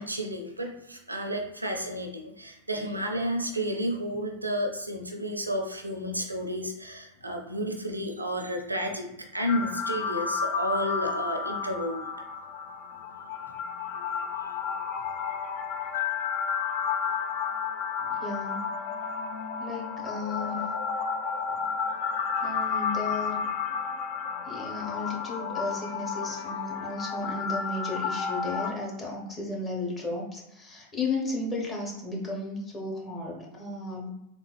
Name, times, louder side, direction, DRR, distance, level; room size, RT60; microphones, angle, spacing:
voice 1, 0.0-12.0, equal, 85° right, 3 dB, 0.4 m, -31 dB
sound 1, 9.5-28.7, left 6 dB, 50° left, 0.3 m, -32 dB
voice 2, 18.0-18.6 19.6-20.7 21.5-21.7 22.4-23.4 24.5-34.1, left 2 dB, 15° left, -3 dB, 0.9 m, -34 dB
3.7 x 2.3 x 2.3 m, 0.88 s
figure-of-eight pair, 90°, 0 cm